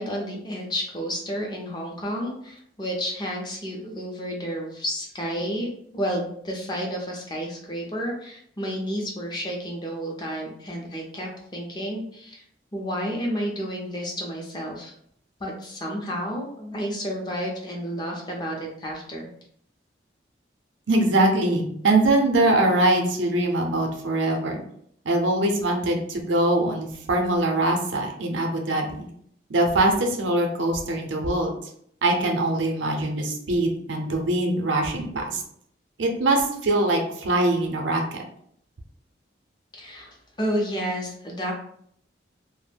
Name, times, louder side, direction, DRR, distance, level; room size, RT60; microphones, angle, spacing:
voice 1, 0.0-12.4 12.7-14.9 15.4-19.3 39.7-41.5, equal, 25° left, -1 dB, 0.5 m, -31 dB
voice 2, 20.9-24.6 25.1-29.1 29.5-31.5 32.0-35.4 36.0-38.2, right 2 dB, 90° right, 2 dB, 0.6 m, -23 dB
2.2 x 2.0 x 3.3 m, 0.67 s
head